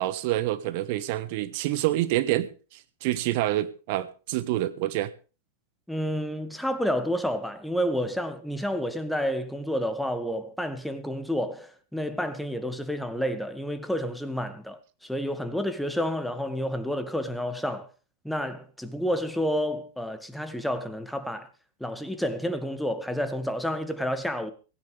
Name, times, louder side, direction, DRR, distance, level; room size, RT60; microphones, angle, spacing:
voice 1, 0.0-5.1, right 15 dB, 50° right, 1.3 m, -27 dB
voice 2, 5.9-17.9 18.2-21.5 21.8-24.5, equal, ahead, 2.0 m, -30 dB
16.5 x 16.5 x 3.5 m
figure-of-eight pair, 90°, 0 cm